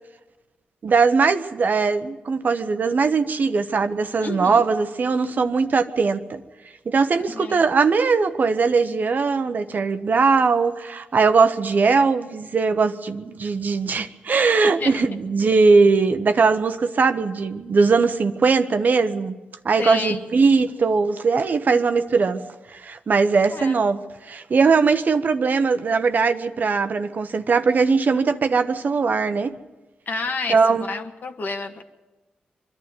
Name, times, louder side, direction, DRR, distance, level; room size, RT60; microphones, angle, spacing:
voice 1, 0.8-6.4 6.8-19.3 19.6-22.4 22.7-24.0 24.3-29.5 30.5-30.9, right 4 dB, 55° right, 10 dB, 1.0 m, -20 dB
voice 2, 4.2-4.6 7.3-7.6 14.8-15.2 19.8-20.2 23.5-23.9 30.1-31.8, left 4 dB, 60° left, 6 dB, 1.7 m, -30 dB
23.0 x 11.5 x 9.5 m, 1.2 s
supercardioid pair, 45°, 3 cm